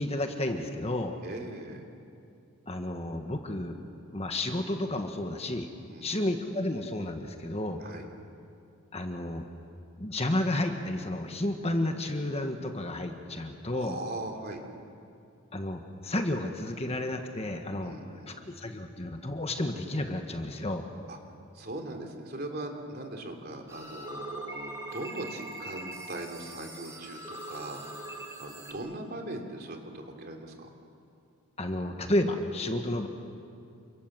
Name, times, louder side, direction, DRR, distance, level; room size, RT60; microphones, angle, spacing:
voice 1, 0.0-1.1 2.7-3.8 4.1-5.7 6.0-7.8 8.9-9.4 10.0-14.0 15.5-17.9 18.3-20.9 31.6-33.1, left 1 dB, 30° left, 5 dB, 1.5 m, -31 dB
voice 2, 1.2-1.8 5.9-6.2 7.8-8.1 13.7-14.6 17.8-18.3 21.1-21.2 21.5-27.8 28.4-30.7 32.7-33.0, right 2 dB, 45° right, 3 dB, 3.1 m, -40 dB
sound 1, 23.7-28.7, right 1 dB, 15° right, 3.5 m, -42 dB
29.0 x 25.5 x 7.6 m, 2.5 s
head